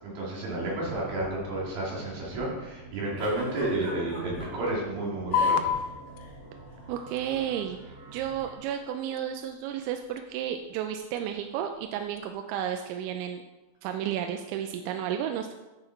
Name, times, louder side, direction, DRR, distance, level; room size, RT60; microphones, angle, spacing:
voice 1, 0.0-5.7, right 2 dB, 55° right, -5 dB, 3.8 m, -31 dB
sound 1, 0.6-8.5, right 3 dB, 40° right, 0.5 m, -48 dB
Giggle, 3.2-4.5 5.3-5.8 6.1-6.3 7.2-7.4, equal, 15° right, 2.7 m, -40 dB
sound 2, 5.3-12.3, left 6 dB, 85° left, 2.8 m, -35 dB
voice 2, 6.9-13.4 13.8-15.5, right 10 dB, 90° right, 6 dB, 2.9 m, -32 dB
10.0 x 5.8 x 4.5 m, 1.1 s
omnidirectional pair, 5.2 m